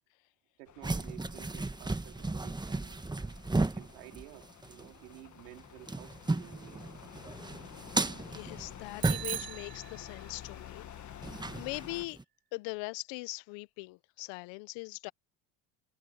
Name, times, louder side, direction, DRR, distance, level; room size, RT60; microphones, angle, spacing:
voice 1, 0.6-3.0 3.6-6.9, right 19 dB, 90° right, 2.9 m, -52 dB
sound 1, 0.7-12.1, left 10 dB, 40° left, 1.8 m, -50 dB
sound 2, 0.8-4.9 5.1-5.2 5.6-9.6 11.2-12.2, right 2 dB, 10° right, 1.4 m, -35 dB
voice 2, 8.2-12.2 12.5-15.1, left 24 dB, 65° left, 1.2 m, -41 dB
Bicycle bell, 9.0-10.6, right 14 dB, 50° right, 2.3 m, -39 dB
supercardioid pair, 95°, 46 cm